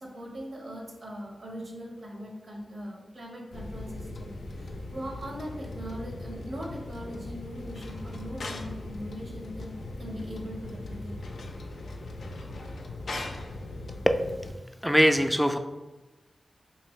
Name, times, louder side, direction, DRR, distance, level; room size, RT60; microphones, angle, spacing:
voice 1, 0.0-11.3, equal, 75° right, -2 dB, 0.8 m, -40 dB
sound 1, 3.5-14.5, left 2 dB, 80° left, 0.3 m, -39 dB
voice 2, 14.8-15.6, equal, ahead, 7 dB, 0.3 m, -21 dB
2.7 x 2.6 x 3.1 m, 1.1 s
cardioid pair, 45°, 0 cm